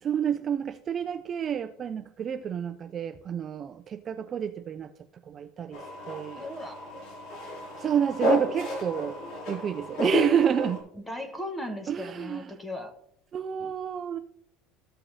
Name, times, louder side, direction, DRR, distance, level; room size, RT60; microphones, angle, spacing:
voice 1, 0.0-4.9 5.3-6.5 7.8-9.2 9.5-10.9 11.9-12.5 13.3-14.2, right 8 dB, 30° right, 9 dB, 0.3 m, -29 dB
sound 1, 5.7-10.8, equal, 55° left, 3.1 m, -31 dB
voice 2, 6.3-6.9 11.0-12.9, left 1 dB, 5° left, 6 dB, 1.2 m, -37 dB
14.5 x 5.5 x 2.7 m, 0.72 s
cardioid pair, 145°, 0 cm